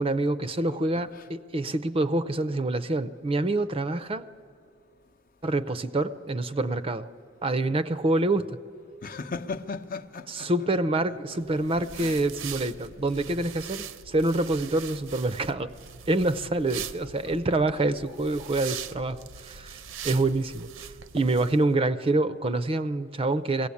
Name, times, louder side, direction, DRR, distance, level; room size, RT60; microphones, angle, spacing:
voice 1, 0.0-4.3 5.4-7.1 7.4-8.6 10.3-15.7 16.1-19.8 20.0-23.7, right 2 dB, 30° right, 0.5 m, -26 dB
voice 2, 0.7-1.3 9.0-10.7 11.1-12.2 17.3-17.6, left 4 dB, 45° left, 0.7 m, -39 dB
sound 1, 11.4-21.6, right 8 dB, 75° right, 0.7 m, -41 dB
21.5 x 17.0 x 8.4 m
head